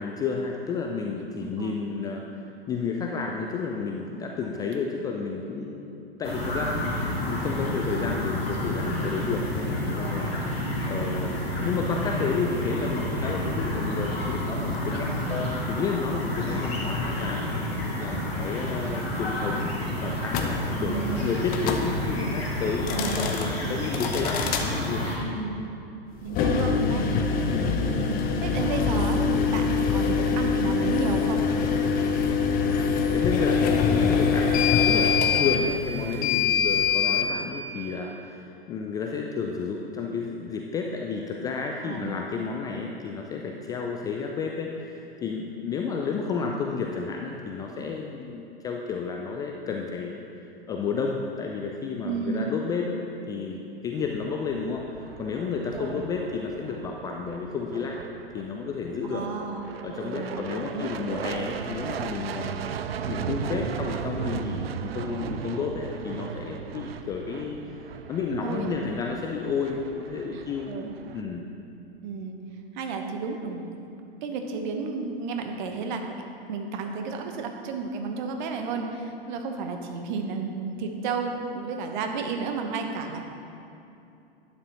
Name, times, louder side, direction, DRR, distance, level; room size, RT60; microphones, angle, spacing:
voice 1, 0.0-2.3 2.7-5.9 6.2-17.4 18.0-25.1 27.5-27.8 33.1-50.2 50.7-53.0 53.3-58.0 58.3-59.2 59.8-62.8 63.1-67.6 68.1-70.7 71.1-71.5, left 5 dB, 15° left, 1 dB, 0.3 m, -31 dB
voice 2, 1.4-1.8 10.0-10.4 14.5-15.2 20.8-21.2 22.9-23.5 25.1-25.6 26.2-27.1 27.8-28.1 28.4-31.4 35.6-35.7 41.8-42.2 52.0-52.5 55.7-56.0 59.0-59.7 60.0-60.3 60.7-60.9 68.4-68.7 70.3-70.9 72.0-72.3 72.7-73.6 74.2-76.0 76.5-83.2, right 4 dB, 50° right, 4 dB, 1.1 m, -32 dB
sound 1, 6.2-25.2, left 1 dB, 75° left, 2.2 m, -30 dB
sound 2, 20.3-20.5 21.5-21.9 22.8-23.5 23.9-24.7 26.2-37.3, left 6 dB, 30° left, 0.8 m, -24 dB
sound 3, 54.0-71.2, right 7 dB, 75° right, 0.5 m, -37 dB
11.5 x 9.2 x 3.0 m, 2.8 s
figure-of-eight pair, 100°, 31 cm